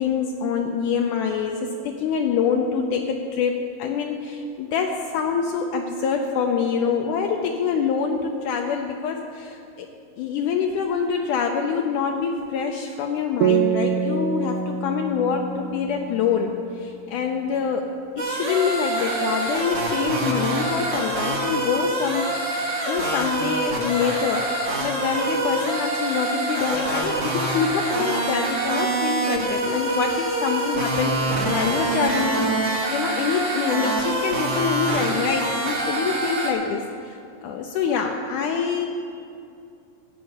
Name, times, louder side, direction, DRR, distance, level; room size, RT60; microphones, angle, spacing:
voice 1, 0.0-9.9 10.2-16.5 16.8-17.9 18.2-22.2 22.9-36.8 37.4-38.9, left 6 dB, 75° left, 2 dB, 2.0 m, -25 dB
sound 1, 13.4-16.9, right 7 dB, 80° right, 1.8 m, -26 dB
sound 2, 18.2-36.5, right 2 dB, 40° right, 1.1 m, -25 dB
15.0 x 5.6 x 8.8 m, 2.6 s
omnidirectional pair, 3.9 m